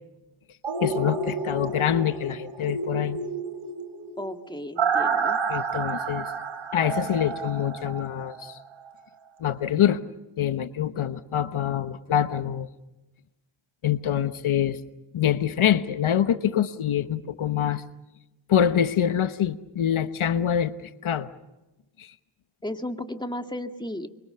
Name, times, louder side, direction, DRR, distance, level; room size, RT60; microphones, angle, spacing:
sound 1, 0.6-8.5 8.9-9.0, right 5 dB, 90° right, 2.9 m, -30 dB
voice 1, 0.8-3.2 5.5-6.3 6.7-8.6 9.4-10.0 10.4-12.7 13.8-14.8 15.1-17.8 18.5-20.7 21.0-21.3 22.0-22.1, left 10 dB, 80° left, 12 dB, 1.1 m, -25 dB
voice 2, 4.2-5.4 22.6-24.1, left 1 dB, 10° left, 6 dB, 2.0 m, -34 dB
26.0 x 24.5 x 6.8 m, 0.98 s
cardioid pair, 60°, 48 cm